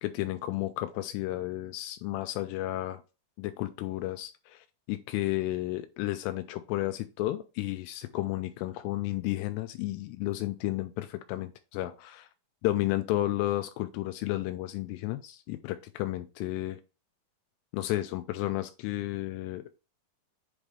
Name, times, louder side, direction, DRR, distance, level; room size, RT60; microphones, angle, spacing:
voice 1, 0.0-3.0 3.4-12.3 12.6-16.8 17.7-19.6, left 16 dB, 85° left, 9 dB, 2.7 m, -32 dB
8.1 x 3.3 x 3.7 m, 0.31 s
omnidirectional pair, 5.0 m